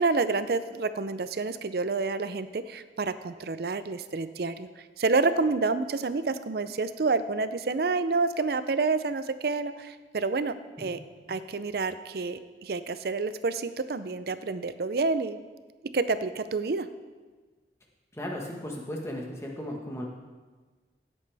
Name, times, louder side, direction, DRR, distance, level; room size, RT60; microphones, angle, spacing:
voice 1, 0.0-4.7 5.0-11.0 11.3-15.4 15.9-16.9, right 3 dB, 55° right, 12 dB, 0.5 m, -28 dB
voice 2, 18.1-20.1, left 1 dB, 15° left, 0 dB, 1.4 m, -35 dB
16.5 x 8.3 x 3.4 m, 1.4 s
head